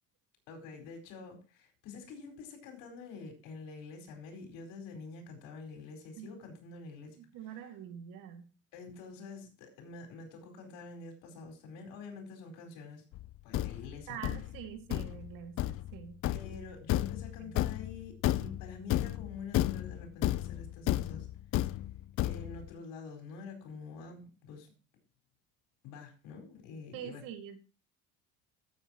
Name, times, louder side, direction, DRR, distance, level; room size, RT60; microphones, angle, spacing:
voice 1, 0.5-7.2 8.7-13.0 13.4-14.2 16.3-21.3 22.2-24.7 25.8-27.2, left 4 dB, 80° left, 4.7 m, -47 dB
voice 2, 7.2-8.5 14.1-16.2 17.4-17.6 26.9-27.6, right 9 dB, 70° right, 2.1 m, -45 dB
Thump thud, 13.1-22.7, left 14 dB, 45° left, 0.4 m, -33 dB
14.5 x 8.1 x 2.9 m
cardioid pair, 120°, 34 cm